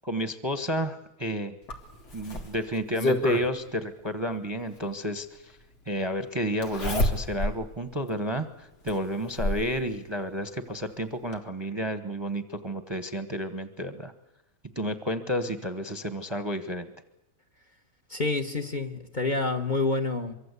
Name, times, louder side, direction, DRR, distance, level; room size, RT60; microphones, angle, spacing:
voice 1, 0.0-1.6 2.1-5.6 5.9-14.1 14.7-16.9, equal, 20° right, 9 dB, 1.1 m, -31 dB
Zipper (clothing), 1.7-3.5 4.9-5.0 6.6-7.6 8.1-8.2 8.9-9.7 10.9-11.0 11.3-11.4, left 1 dB, 75° left, 2.9 m, -28 dB
voice 2, 18.1-20.3, left 3 dB, 30° left, 8 dB, 1.4 m, -28 dB
24.5 x 24.0 x 8.3 m, 0.97 s
omnidirectional pair, 1.7 m